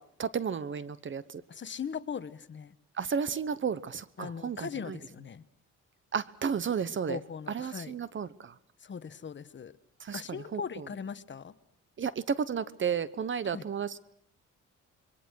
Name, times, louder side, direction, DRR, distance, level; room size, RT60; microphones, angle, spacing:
voice 1, 0.2-1.4 3.0-5.0 6.1-7.2 7.5-8.5 10.0-10.8 12.0-14.0, right 7 dB, 40° right, 17 dB, 1.0 m, -33 dB
voice 2, 1.5-2.7 4.2-5.4 7.1-7.9 8.8-9.7 10.1-11.5 13.5-13.7, left 6 dB, 40° left, 14 dB, 1.1 m, -39 dB
26.5 x 22.5 x 6.4 m, 0.70 s
cardioid pair, 90°, 30 cm